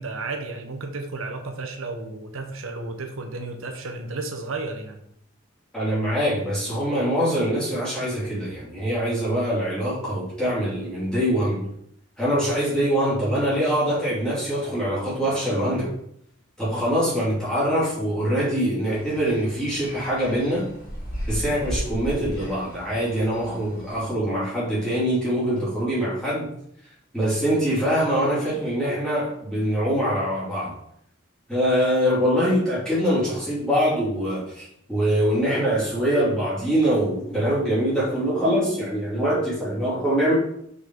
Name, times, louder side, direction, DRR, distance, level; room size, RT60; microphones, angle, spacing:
voice 1, 0.0-5.0, right 3 dB, 80° right, 4 dB, 0.9 m, -33 dB
voice 2, 5.7-11.6 12.2-15.9 16.6-20.7 21.3-26.5 27.1-30.7 31.5-40.3, equal, 5° left, -9 dB, 2.9 m, -23 dB
sound 1, 18.8-24.0, equal, 45° left, 2.4 m, -35 dB
6.0 x 5.3 x 3.9 m, 0.72 s
head